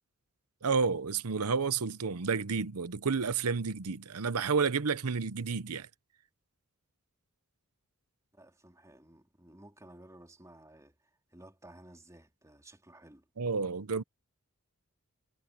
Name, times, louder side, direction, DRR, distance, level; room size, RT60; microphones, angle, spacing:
voice 1, 0.6-5.9 13.4-14.0, right 5 dB, 80° right, 0.8 m, -30 dB
voice 2, 8.3-13.3, right 1 dB, 15° right, 3.3 m, -55 dB
head